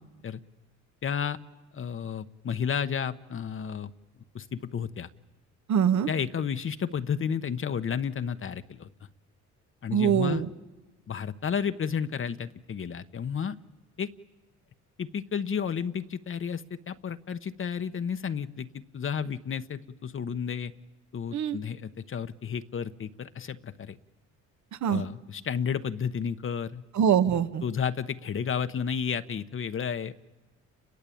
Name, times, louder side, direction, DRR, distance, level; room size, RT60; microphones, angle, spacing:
voice 1, 1.0-1.4 1.7-3.9 4.3-5.1 6.1-8.9 9.8-10.4 11.1-13.6 14.0-14.1 15.0-20.7 21.1-24.0 24.9-26.8 27.6-30.2, left 7 dB, 45° left, 10 dB, 1.0 m, -32 dB
voice 2, 5.7-6.1 9.9-10.5 21.3-21.6 24.8-25.0 26.9-27.6, right 8 dB, 70° right, 11 dB, 1.5 m, -23 dB
30.0 x 23.0 x 8.6 m, 1.2 s
cardioid pair, 90°, 30 cm